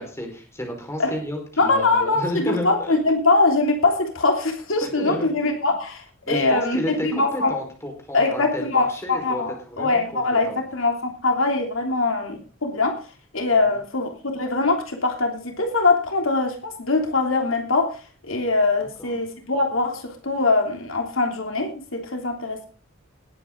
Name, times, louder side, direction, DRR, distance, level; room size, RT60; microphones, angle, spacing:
voice 1, 0.0-3.0 4.8-5.3 6.2-10.6 13.5-13.6 18.8-19.2, equal, 15° left, 2 dB, 4.9 m, -31 dB
voice 2, 1.6-7.5 8.1-13.0 13.3-22.7, left 3 dB, 70° left, 3 dB, 3.1 m, -22 dB
19.5 x 9.2 x 3.9 m, 0.37 s
head